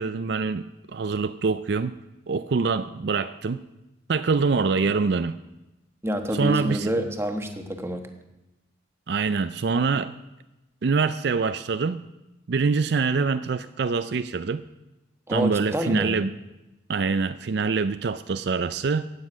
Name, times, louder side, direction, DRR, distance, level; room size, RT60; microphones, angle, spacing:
voice 1, 0.0-2.0 2.3-3.6 4.1-5.4 6.3-6.9 9.1-10.1 10.8-12.1 12.5-14.6 15.3-16.3 16.9-19.1, right 4 dB, 60° right, 12 dB, 0.4 m, -25 dB
voice 2, 6.0-8.0 15.3-16.1, equal, 15° right, 5 dB, 1.2 m, -27 dB
15.5 x 9.6 x 6.2 m, 0.97 s
head